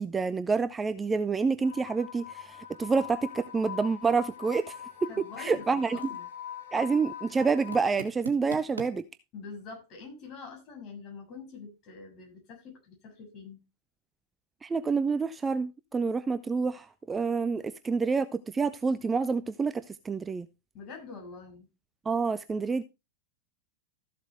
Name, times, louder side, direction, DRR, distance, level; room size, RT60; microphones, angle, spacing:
voice 1, 0.0-4.7 5.0-5.1 5.4-6.0 6.7-9.0 14.6-20.5 22.1-22.8, right 4 dB, 15° right, 0.5 m, -28 dB
sound 1, 1.6-7.9, left 9 dB, 65° left, 3.0 m, -43 dB
sound 2, 3.1-8.9, right 5 dB, 70° right, 2.2 m, -49 dB
voice 2, 5.1-6.3 9.3-13.6 20.7-21.7, left 4 dB, 35° left, 6.9 m, -45 dB
14.0 x 7.5 x 3.4 m
figure-of-eight pair, 90°, 0 cm